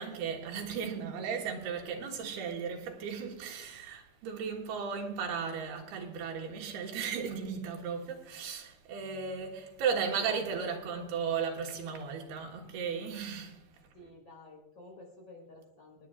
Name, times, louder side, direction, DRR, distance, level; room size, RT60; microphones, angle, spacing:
voice 1, 0.0-13.6, right 6 dB, 80° right, 3.3 m, -35 dB
voice 2, 13.9-16.1, left 2 dB, 30° left, 4.7 m, -52 dB
28.0 x 9.8 x 2.5 m
omnidirectional pair, 4.4 m